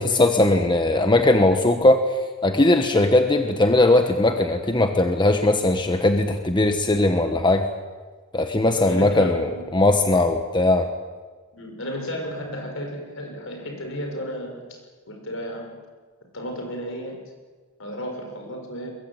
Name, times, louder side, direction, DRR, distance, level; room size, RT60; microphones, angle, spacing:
voice 1, 0.0-2.0 2.4-7.7 8.3-10.9, left 2 dB, 20° left, 6 dB, 1.2 m, -19 dB
voice 2, 8.8-9.7 11.5-14.6 15.1-15.7 16.3-17.2 17.8-18.9, equal, 65° left, 4 dB, 6.4 m, -33 dB
23.0 x 22.0 x 9.0 m, 1.4 s
head